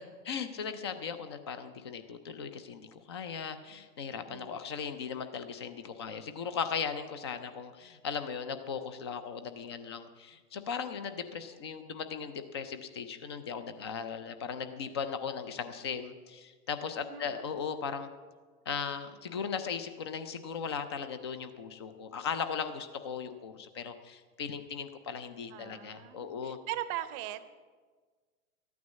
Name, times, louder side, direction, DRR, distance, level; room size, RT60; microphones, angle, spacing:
voice 1, 0.3-18.1 18.7-26.6, left 6 dB, 20° left, 10 dB, 0.3 m, -38 dB
voice 2, 4.3-4.6 17.0-17.5 25.5-27.6, right 12 dB, 25° right, 13 dB, 0.6 m, -40 dB
13.5 x 9.4 x 7.1 m, 1.5 s
hypercardioid pair, 130°, 46 cm